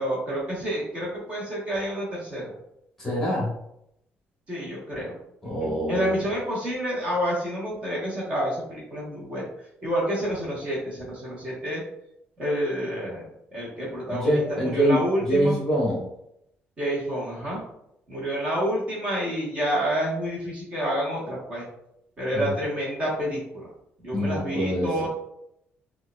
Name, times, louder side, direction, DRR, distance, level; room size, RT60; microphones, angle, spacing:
voice 1, 0.0-2.5 4.5-5.1 5.4-9.4 9.8-11.8 12.4-13.2 13.5-15.6 16.8-17.6 18.1-21.6 22.2-23.7 24.0-25.1, equal, 30° right, -6 dB, 1.1 m, -29 dB
voice 2, 3.0-3.5 5.4-6.2 14.1-16.0 22.3-22.5 24.1-25.1, equal, 10° left, -5 dB, 1.1 m, -25 dB
4.4 x 2.3 x 2.2 m, 0.79 s
cardioid pair, 165°, 4 cm